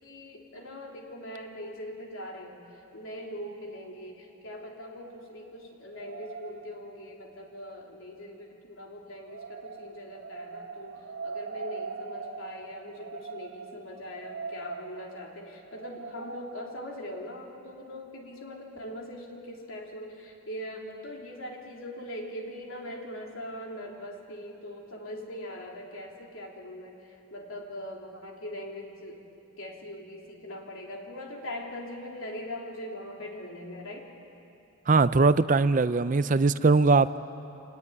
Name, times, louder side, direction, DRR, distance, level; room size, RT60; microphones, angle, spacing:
voice 1, 0.0-29.2 29.6-34.1, left 1 dB, 75° left, 0 dB, 3.4 m, -41 dB
sound 1, 5.0-7.3 9.2-16.9, right 4 dB, 65° right, 2.4 m, -42 dB
voice 2, 34.9-37.2, right 3 dB, 40° right, 14 dB, 0.5 m, -21 dB
25.0 x 19.0 x 9.7 m, 2.7 s
head